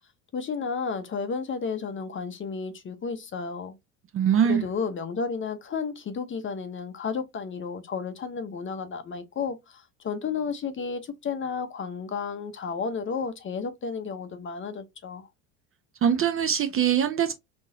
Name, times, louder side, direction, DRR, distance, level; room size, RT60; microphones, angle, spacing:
voice 1, 0.3-3.8 4.4-15.3, left 5 dB, 25° left, 0.6 m, -32 dB
voice 2, 4.1-4.6 16.0-17.3, right 8 dB, 30° right, 0.4 m, -22 dB
3.8 x 2.5 x 2.6 m
hypercardioid pair, 75°, 47 cm